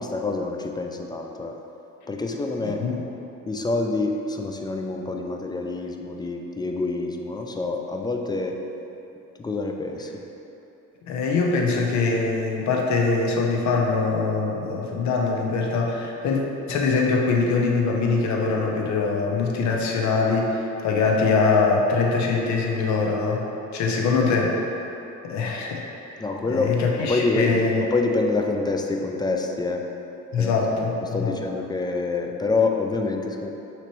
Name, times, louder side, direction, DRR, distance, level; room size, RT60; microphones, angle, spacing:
voice 1, 0.0-1.6 2.1-2.8 3.5-8.6 9.4-10.2 26.2-29.8 30.4-30.8 31.1-33.5, left 3 dB, 15° left, 2 dB, 0.3 m, -26 dB
voice 2, 2.6-3.0 11.1-16.4 16.7-23.5 23.7-24.5 25.2-25.8 26.5-27.8 30.3-31.4, left 4 dB, 70° left, 0 dB, 0.7 m, -23 dB
5.8 x 3.0 x 3.0 m, 2.9 s
cardioid pair, 90°, 30 cm